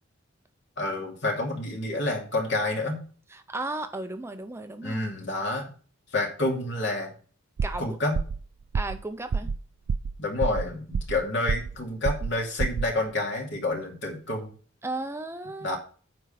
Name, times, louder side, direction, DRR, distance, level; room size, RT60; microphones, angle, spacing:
voice 1, 0.8-3.0 4.8-5.7 6.1-7.1 7.8-8.2 10.2-14.5 15.6-15.8, left 2 dB, 60° left, 2.7 m, -29 dB
voice 2, 3.3-5.0 7.6-8.0 8.7-9.5 14.8-15.7, right 2 dB, 15° right, 0.6 m, -35 dB
sound 1, 7.6-7.9 8.1-8.4 8.7-9.0 9.3-9.6 9.9-10.1 10.4-11.2 11.5-11.8 12.0-12.3 12.6-12.9, right 5 dB, 80° right, 0.4 m, -27 dB
9.6 x 4.6 x 5.7 m
head